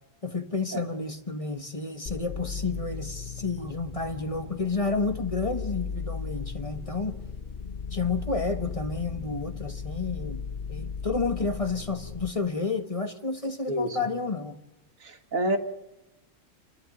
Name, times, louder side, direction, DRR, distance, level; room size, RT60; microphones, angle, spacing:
voice 1, 0.2-7.2 7.9-10.4 10.7-14.6, left 4 dB, 25° left, 8 dB, 1.3 m, -30 dB
sound 1, 2.1-12.3, left 6 dB, 45° left, 1.1 m, -36 dB
voice 2, 13.7-14.0 15.0-15.6, right 1 dB, 85° right, 6 dB, 2.2 m, -28 dB
29.0 x 12.0 x 9.2 m, 0.97 s
omnidirectional pair, 1.4 m